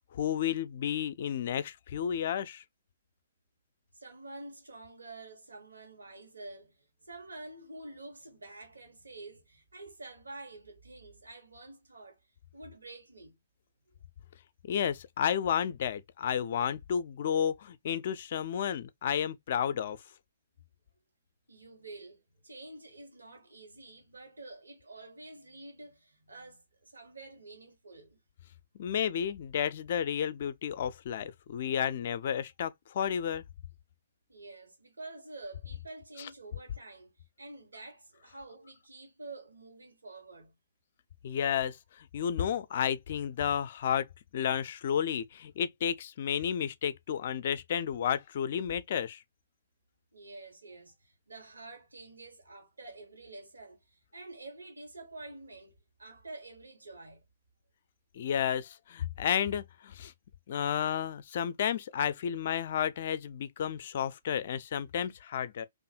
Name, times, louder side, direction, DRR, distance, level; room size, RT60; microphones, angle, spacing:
voice 1, 0.1-2.6 14.7-20.0 28.8-33.4 36.2-36.3 41.2-44.1 44.3-49.2 58.1-60.1 60.5-65.7, left 8 dB, 50° left, 0.4 m, -32 dB
voice 2, 3.9-12.2 12.5-13.4 13.9-14.0 21.5-28.2 34.3-40.5 50.1-57.2, right 2 dB, 80° right, 1.1 m, -48 dB
2.6 x 2.4 x 2.4 m
figure-of-eight pair, 120°, 0 cm